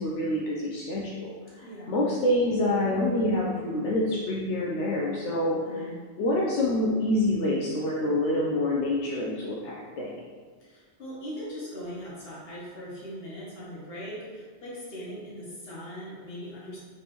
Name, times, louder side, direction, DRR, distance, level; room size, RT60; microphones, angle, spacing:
voice 1, 0.0-5.9 6.2-10.1, left 1 dB, 80° left, -4 dB, 0.9 m, -27 dB
voice 2, 1.6-2.0 5.6-6.0 10.6-16.8, equal, 60° left, -6 dB, 1.4 m, -40 dB
5.0 x 3.4 x 3.0 m, 1.5 s
omnidirectional pair, 1.2 m